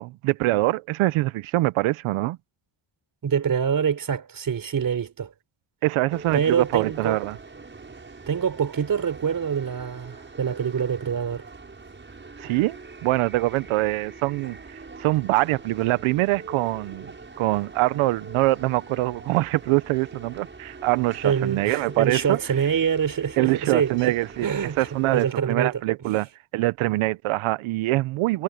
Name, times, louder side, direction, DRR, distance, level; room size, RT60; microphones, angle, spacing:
voice 1, 0.0-2.4 5.8-7.4 12.4-17.1 17.4-22.4 23.4-24.5 24.8-28.4, right 19 dB, 90° right, 1.0 m, -24 dB
voice 2, 3.2-5.3 6.3-7.2 8.3-11.5 21.2-24.1 24.4-24.9 25.1-25.8, right 7 dB, 45° right, 4.5 m, -25 dB
sound 1, 6.1-25.3, right 3 dB, 25° right, 6.4 m, -43 dB
cardioid pair, 90°, 47 cm